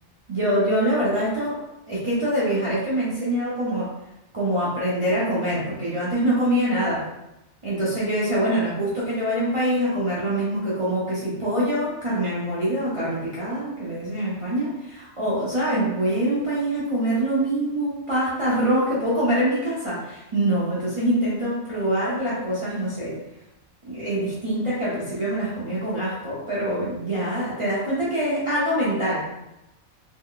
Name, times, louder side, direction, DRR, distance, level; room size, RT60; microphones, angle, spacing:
voice 1, 0.3-1.6 1.9-3.9 4.3-7.1 7.6-23.2 23.9-29.3, right 1 dB, 30° right, -9 dB, 0.6 m, -24 dB
3.1 x 2.1 x 3.7 m, 0.92 s
omnidirectional pair, 1.4 m